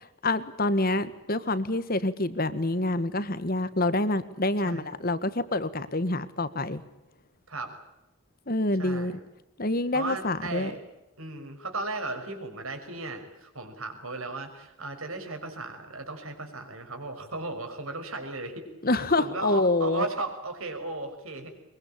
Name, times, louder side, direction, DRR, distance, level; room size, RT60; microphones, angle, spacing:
voice 1, 0.0-6.8 8.5-9.2 9.6-10.7 18.8-20.1, left 2 dB, 45° left, 13 dB, 1.5 m, -27 dB
voice 2, 4.6-4.9 7.5-7.7 8.8-9.2 9.9-10.8 11.2-18.7 19.1-21.5, right 3 dB, 75° right, 6 dB, 5.5 m, -36 dB
23.0 x 23.0 x 8.8 m, 0.95 s
head